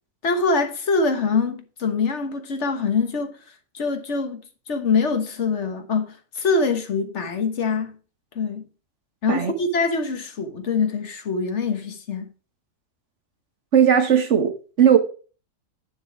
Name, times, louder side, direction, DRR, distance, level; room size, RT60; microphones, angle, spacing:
voice 1, 0.2-3.4 3.7-4.4 4.7-7.9 8.3-8.6 9.2-12.3, left 4 dB, 60° left, 1.5 m, -24 dB
voice 2, 13.7-15.0, right 8 dB, 60° right, 1.5 m, -17 dB
9.5 x 6.8 x 4.8 m
omnidirectional pair, 1.4 m